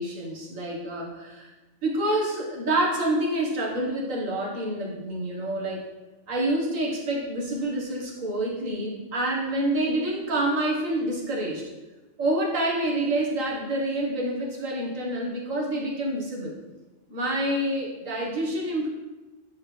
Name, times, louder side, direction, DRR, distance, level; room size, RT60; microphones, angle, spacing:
voice 1, 0.0-1.5 1.8-5.8 6.3-11.6 12.2-16.5 17.1-18.9, right 1 dB, 90° right, -3 dB, 2.0 m, -27 dB
9.3 x 5.6 x 3.3 m, 1.1 s
omnidirectional pair, 1.3 m